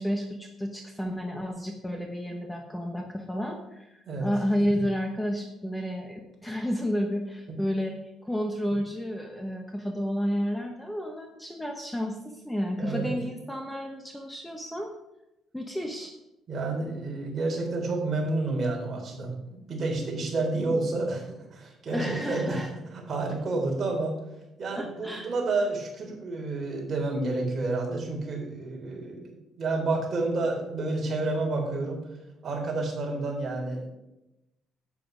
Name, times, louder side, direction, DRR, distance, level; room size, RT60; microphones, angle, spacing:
voice 1, 0.0-14.9 15.5-16.1 21.9-22.7 24.8-25.3, equal, 5° left, 3 dB, 1.0 m, -31 dB
voice 2, 12.7-13.1 16.5-22.6 22.9-24.1 24.6-32.0 32.4-33.9, right 3 dB, 35° right, -1 dB, 3.9 m, -30 dB
10.5 x 8.5 x 5.2 m, 0.93 s
cardioid pair, 135°, 0 cm